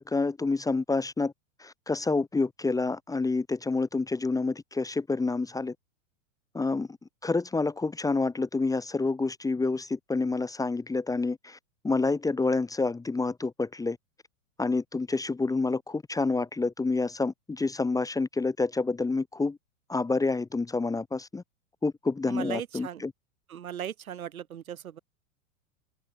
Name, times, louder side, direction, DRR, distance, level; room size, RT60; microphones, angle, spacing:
voice 1, 0.0-1.3 1.6-5.7 6.5-6.9 7.2-11.6 11.8-14.0 14.6-19.6 19.9-21.4 21.8-23.1, left 3 dB, 10° left, 1.3 m, -28 dB
voice 2, 22.3-23.0 23.5-25.0, right 9 dB, 85° right, 3.6 m, -37 dB
open air
hypercardioid pair, 120°, 41 cm